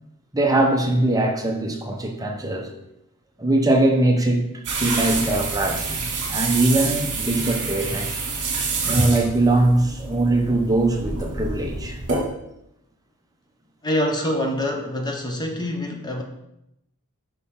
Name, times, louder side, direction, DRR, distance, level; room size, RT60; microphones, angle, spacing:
voice 1, 0.3-2.7 3.4-4.4 4.8-6.0 6.3-8.2 8.8-12.0, right 2 dB, 15° right, 0.8 m, -21 dB
sound 1, 4.6-12.2, right 3 dB, 55° right, 2.1 m, -27 dB
voice 2, 13.8-16.2, left 1 dB, 20° left, 0.8 m, -25 dB
8.4 x 5.6 x 3.7 m
head